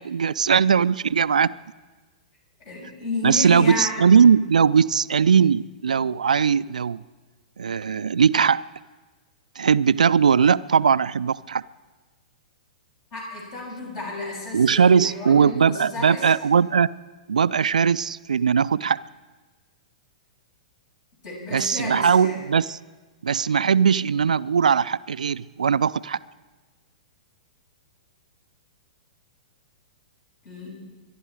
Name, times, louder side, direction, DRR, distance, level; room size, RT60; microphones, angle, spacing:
voice 1, 0.0-1.5 3.2-7.0 7.6-8.6 9.6-11.6 14.5-16.9 17.3-19.0 21.5-22.8 23.2-26.2, right 6 dB, 75° right, 17 dB, 0.4 m, -19 dB
voice 2, 2.6-3.9 13.1-16.2 21.2-22.4 30.4-30.7, left 2 dB, 50° left, -2 dB, 6.6 m, -32 dB
24.5 x 11.5 x 4.9 m, 1.3 s
figure-of-eight pair, 110°, 4 cm